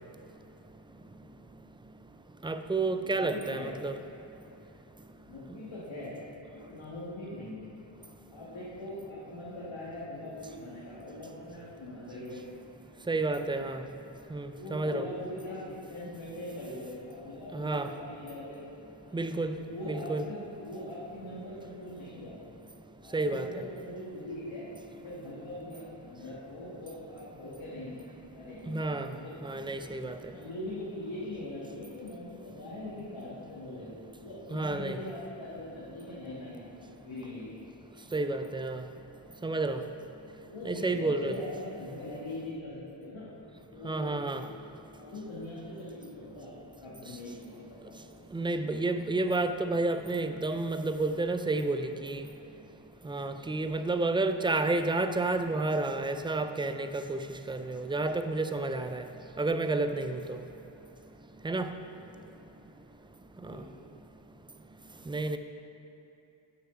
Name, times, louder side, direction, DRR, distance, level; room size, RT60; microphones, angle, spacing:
voice 1, 2.4-3.9 13.1-13.8 14.3-15.1 17.5-17.9 19.1-19.6 19.9-20.2 23.1-23.6 28.7-29.1 29.4-30.2 34.5-35.0 38.1-38.8 39.4-39.8 40.6-41.3 43.8-44.4 48.3-52.3 53.0-57.2 57.5-59.1 59.4-60.4 61.4-61.7 65.1-65.4, right 2 dB, 10° right, 8 dB, 0.3 m, -30 dB
voice 2, 3.0-3.7 5.2-6.2 6.5-7.8 8.3-12.4 13.4-13.7 14.6-18.6 19.0-19.2 19.6-22.4 23.0-24.7 24.9-28.0 28.3-29.4 30.3-33.9 34.2-36.7 37.0-37.5 40.4-43.3 43.7-44.5 45.0-48.1 61.8-62.2 63.4-63.8, left 1 dB, 75° left, -8 dB, 1.6 m, -42 dB
7.2 x 5.9 x 5.6 m, 2.9 s
wide cardioid pair, 65°, 47 cm